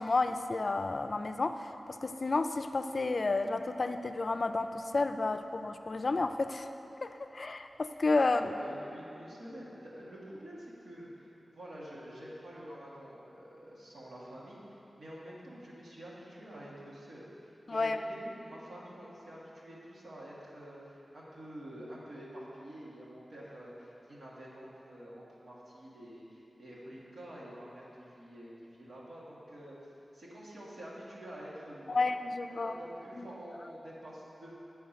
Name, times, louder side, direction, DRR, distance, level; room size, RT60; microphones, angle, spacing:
voice 1, 0.0-1.6 2.0-6.7 7.0-7.1 7.3-8.4 17.7-18.0 31.9-32.7 33.2-33.3, left 3 dB, 60° left, 8 dB, 0.3 m, -31 dB
voice 2, 8.3-11.3 11.5-29.8 30.1-32.0 32.5-34.5, equal, 90° right, -7 dB, 1.7 m, -48 dB
8.4 x 4.4 x 5.7 m, 2.9 s
cardioid pair, 50°, 0 cm